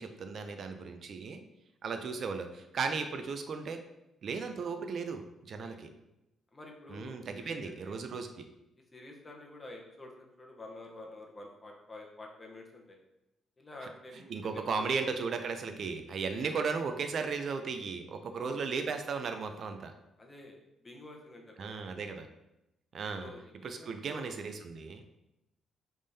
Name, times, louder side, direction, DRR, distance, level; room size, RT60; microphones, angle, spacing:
voice 1, 0.0-1.4 1.8-3.8 4.2-5.9 6.9-8.5 14.3-19.9 21.6-22.3 22.9-23.3 23.6-25.0, right 5 dB, 55° right, 7 dB, 0.5 m, -36 dB
voice 2, 6.5-8.0 8.9-13.0 13.6-14.6 16.3-16.5 18.4-18.6 20.2-20.6 20.8-21.8 23.2-24.4, left 1 dB, 25° left, 0 dB, 0.9 m, -49 dB
5.1 x 3.5 x 2.7 m, 0.88 s
cardioid pair, 90°, 0 cm